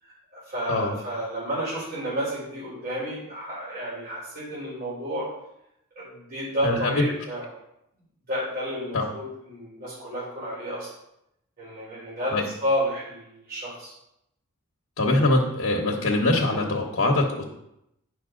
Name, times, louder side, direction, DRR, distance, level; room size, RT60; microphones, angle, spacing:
voice 1, 0.0-5.3 6.0-7.5 8.3-10.9 11.6-13.9, equal, 45° right, -9 dB, 3.7 m, -31 dB
voice 2, 15.0-17.4, left 2 dB, 60° left, 0 dB, 1.2 m, -23 dB
10.0 x 5.5 x 3.8 m, 0.82 s
head